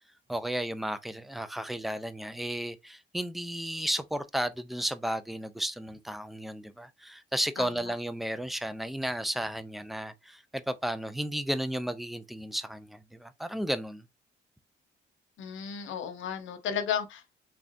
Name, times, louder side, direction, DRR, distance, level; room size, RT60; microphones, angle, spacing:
voice 1, 0.3-14.0, equal, ahead, 0.4 m, -33 dB
voice 2, 15.4-17.4, left 8 dB, 75° left, 0.9 m, -34 dB
3.6 x 3.5 x 2.5 m
cardioid pair, 90°, 20 cm